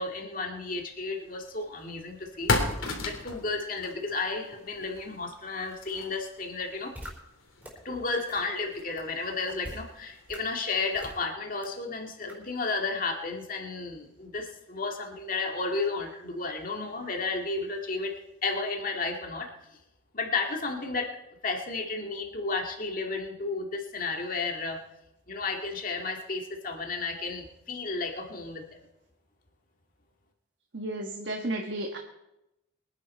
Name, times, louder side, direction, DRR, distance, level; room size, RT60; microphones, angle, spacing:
voice 1, 0.0-2.5 3.0-6.9 7.8-18.1 18.4-19.7 20.1-21.2 21.4-24.8 25.3-28.8, left 3 dB, 45° left, 2 dB, 2.0 m, -33 dB
sound 1, 0.9-11.2, left 3 dB, 85° left, 3.1 m, -37 dB
sound 2, 7.0-7.1 7.6-7.7 8.3-8.4 9.0-9.1 9.6-9.8 10.3-10.4 11.0-11.2 11.6-11.7 12.3-12.4, equal, 10° right, 3.4 m, -41 dB
voice 2, 30.7-32.0, right 1 dB, 60° right, 2 dB, 1.4 m, -33 dB
23.5 x 10.0 x 4.3 m, 0.90 s
head